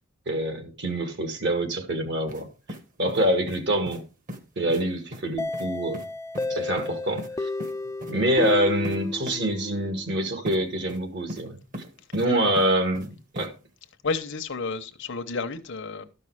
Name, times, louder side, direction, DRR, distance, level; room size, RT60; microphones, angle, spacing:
voice 1, 0.3-2.5 3.0-4.0 4.6-6.0 6.5-7.5 8.1-11.6 12.1-13.5, right 1 dB, 60° right, 2.0 m, -25 dB
sound 1, 2.3-2.4 2.7-3.6 3.9-4.0 4.3-4.4 4.7-4.8 5.1-5.2 5.5-5.7 5.9-6.1 6.3-6.5 6.8-7.3 7.6-7.7 8.0-8.1 8.4-8.5 8.8-9.0 9.3-9.4 10.5-10.6 10.9-11.4 11.7-12.3 12.6-13.1 13.4-13.5, left 1 dB, 40° right, 1.5 m, -37 dB
sound 2, 5.4-10.1, left 3 dB, 15° left, 0.4 m, -32 dB
voice 2, 14.0-16.0, left 4 dB, 65° left, 1.0 m, -31 dB
13.0 x 5.4 x 4.8 m
head